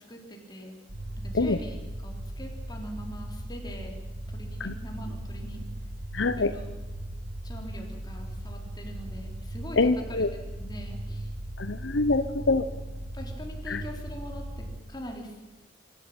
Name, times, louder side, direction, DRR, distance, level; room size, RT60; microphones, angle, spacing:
voice 1, 0.1-0.7 1.1-1.8 2.0-4.0 4.3-5.6 6.4-6.7 7.4-10.3 10.6-11.3 13.1-15.4, equal, 25° left, 1 dB, 4.0 m, -42 dB
sound 1, 0.9-14.8, right 1 dB, 80° right, 1.9 m, -38 dB
voice 2, 6.1-6.5 9.8-10.3 11.6-12.6 13.7-13.8, left 3 dB, 75° left, 11 dB, 0.9 m, -25 dB
25.0 x 13.0 x 8.8 m, 1.1 s
head